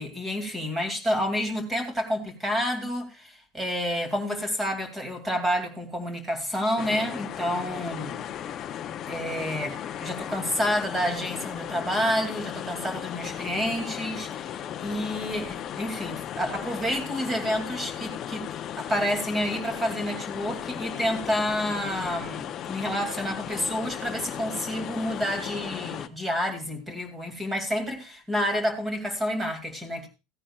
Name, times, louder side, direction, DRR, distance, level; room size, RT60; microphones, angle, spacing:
voice 1, 0.0-8.2 9.0-18.5 18.8-30.1, equal, 10° right, 2.4 m, -29 dB
sound 1, 6.8-26.1, left 10 dB, 30° left, 0.6 m, -36 dB
17.0 x 9.8 x 2.3 m
supercardioid pair, 160°, 0 cm